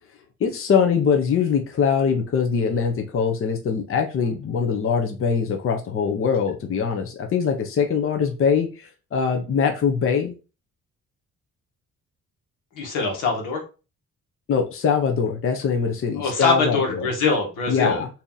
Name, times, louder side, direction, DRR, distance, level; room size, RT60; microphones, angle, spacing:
voice 1, 0.4-10.3 14.5-17.1 17.7-18.1, left 6 dB, 45° left, 4 dB, 0.7 m, -22 dB
voice 2, 12.7-13.6 16.2-18.0, left 4 dB, 85° left, 1 dB, 1.3 m, -23 dB
2.9 x 2.7 x 3.8 m, 0.32 s
cardioid pair, 90°, 30 cm